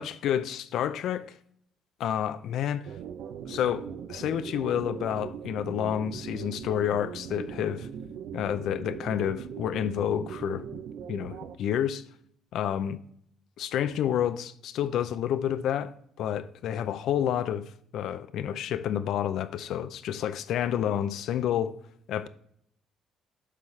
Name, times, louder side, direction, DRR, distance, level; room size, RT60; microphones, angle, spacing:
voice 1, 0.0-1.4 2.0-2.9 3.5-7.9 8.3-10.6 11.1-12.0 12.5-13.0 13.6-15.9 16.2-21.7 22.1-22.3, left 10 dB, 60° left, 0.5 m, -29 dB
sound 1, 2.8-11.6, right 8 dB, 60° right, 0.6 m, -40 dB
8.3 x 5.6 x 3.2 m
cardioid pair, 170°, 0 cm